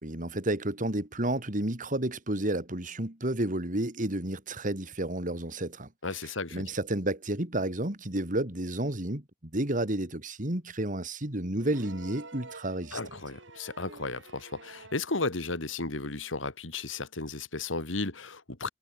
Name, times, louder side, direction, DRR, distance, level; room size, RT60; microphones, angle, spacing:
voice 1, 0.0-5.9 6.2-13.0, right 1 dB, 40° right, 3.1 m, -31 dB
voice 2, 6.0-6.6 12.9-18.7, left 3 dB, 80° left, 2.6 m, -34 dB
sound 1, 11.6-15.1 16.5-16.6, right 3 dB, 65° right, 4.3 m, -49 dB
head